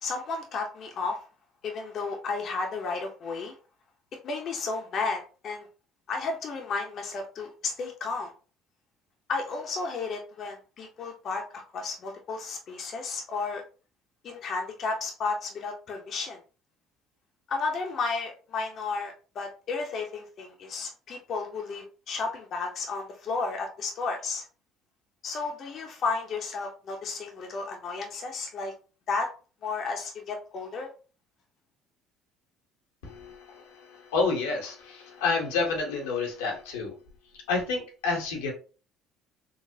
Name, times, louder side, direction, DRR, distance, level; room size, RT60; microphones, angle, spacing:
voice 1, 0.0-1.2 1.6-3.5 4.2-5.7 6.1-8.3 9.3-13.6 14.2-16.4 17.5-24.4 25.2-28.7 29.1-29.3 29.6-30.9, left 4 dB, 55° left, 2 dB, 0.7 m, -33 dB
voice 2, 33.0-37.0 37.3-38.5, left 4 dB, 85° left, 0 dB, 0.9 m, -29 dB
3.9 x 2.1 x 2.7 m, 0.36 s
hypercardioid pair, 65°, 0 cm